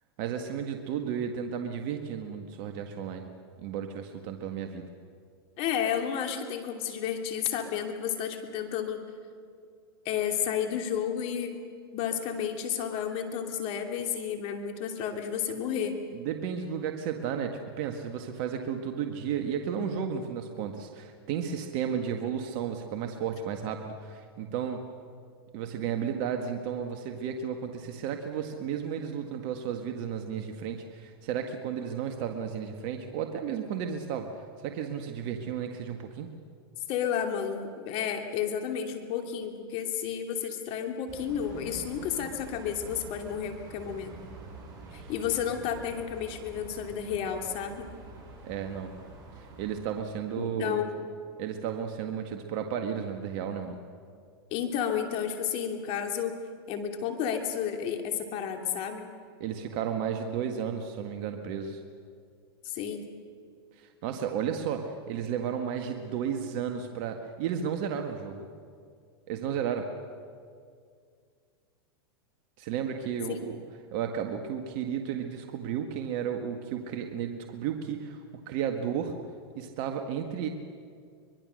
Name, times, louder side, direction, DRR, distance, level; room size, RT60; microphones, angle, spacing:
voice 1, 0.2-3.3 3.6-4.9 16.1-24.8 25.5-34.3 34.6-36.3 44.9-45.1 48.4-48.9 49.4-50.8 51.4-53.8 59.4-61.8 63.8-68.5 69.3-69.9 72.6-73.6 73.9-79.1 79.6-80.5, right 8 dB, 55° right, 5 dB, 1.8 m, -33 dB
voice 2, 5.6-9.0 10.0-11.5 11.9-16.0 36.9-44.1 44.9-47.9 50.4-51.1 54.5-56.4 56.7-59.1 62.6-63.1 73.3-73.4, left 8 dB, 50° left, 5 dB, 2.9 m, -31 dB
sound 1, 41.1-49.8, right 3 dB, 30° right, 7.3 m, -46 dB
24.5 x 21.5 x 6.5 m, 2.2 s
hypercardioid pair, 115°, 13 cm